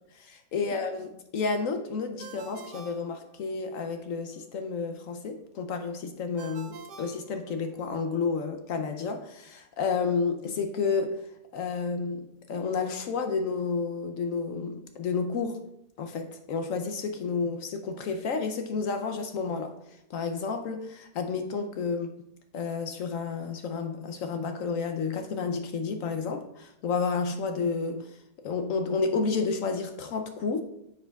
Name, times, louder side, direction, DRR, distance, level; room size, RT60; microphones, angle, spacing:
voice 1, 0.1-11.2 11.5-15.6 16.0-19.8 20.1-22.1 22.5-28.2 28.4-30.6, left 4 dB, 65° left, 7 dB, 0.9 m, -31 dB
Ringtone, 2.2-3.9 6.4-8.0, right 4 dB, 80° right, 1.3 m, -47 dB
9.6 x 6.6 x 2.3 m, 0.82 s
omnidirectional pair, 1.7 m